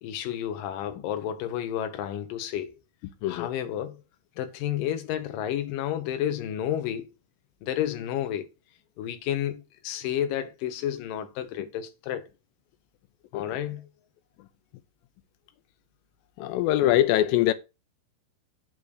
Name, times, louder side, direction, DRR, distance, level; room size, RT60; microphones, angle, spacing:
voice 1, 0.0-2.8 3.3-4.0 4.4-7.1 7.6-8.5 9.0-12.3 13.3-13.9 16.5-16.6, left 11 dB, 70° left, 2.4 m, -31 dB
voice 2, 16.4-17.5, left 13 dB, 90° left, 2.0 m, -22 dB
8.7 x 3.8 x 6.6 m
omnidirectional pair, 4.8 m